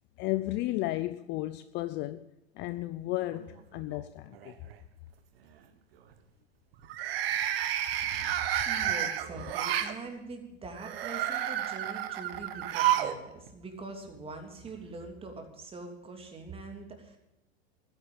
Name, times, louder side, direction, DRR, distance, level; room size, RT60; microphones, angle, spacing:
voice 1, 0.2-2.3 2.5-4.6 8.2-8.3, left 17 dB, 35° left, 0.6 m, -33 dB
sound 1, 3.3-4.0 4.3-4.7 6.8-9.9 10.8-13.2 13.5-13.6 14.7-14.8, right 11 dB, 65° right, 1.6 m, -31 dB
voice 2, 8.2-17.2, right 3 dB, 15° right, 3.0 m, -43 dB
13.0 x 10.5 x 8.8 m
hypercardioid pair, 120°, 33 cm